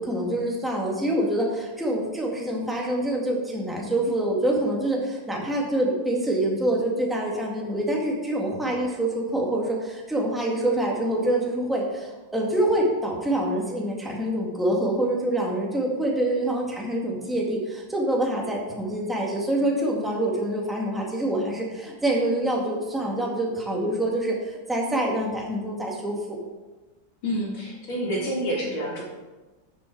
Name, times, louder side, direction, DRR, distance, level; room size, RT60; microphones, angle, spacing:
voice 1, 0.0-26.4, right 1 dB, ahead, -2 dB, 1.8 m, -26 dB
voice 2, 27.2-29.0, equal, 80° left, -2 dB, 3.1 m, -28 dB
12.5 x 7.0 x 4.7 m, 1.2 s
omnidirectional pair, 2.1 m